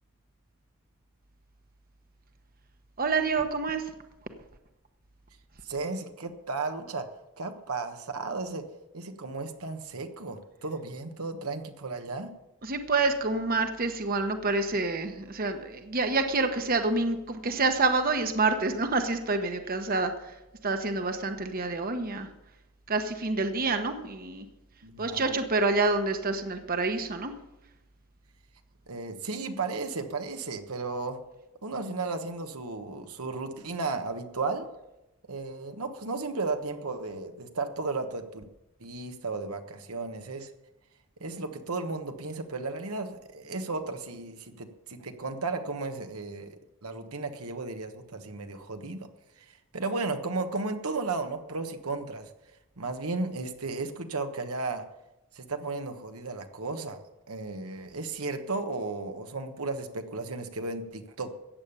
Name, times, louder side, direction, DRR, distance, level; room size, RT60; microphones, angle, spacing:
voice 1, 3.0-3.9 12.6-20.3 20.6-22.3 22.9-24.5 25.0-27.3, right 3 dB, 40° right, 7 dB, 1.0 m, -27 dB
voice 2, 5.6-7.1 7.4-8.6 8.9-12.3 24.8-25.2 28.9-31.2 31.6-34.7 35.3-38.4 38.8-40.5 41.2-49.1 49.4-52.3 52.8-54.9 55.3-57.0 57.3-61.3, right 3 dB, 90° right, 6 dB, 1.3 m, -34 dB
15.0 x 8.8 x 7.0 m, 0.94 s
head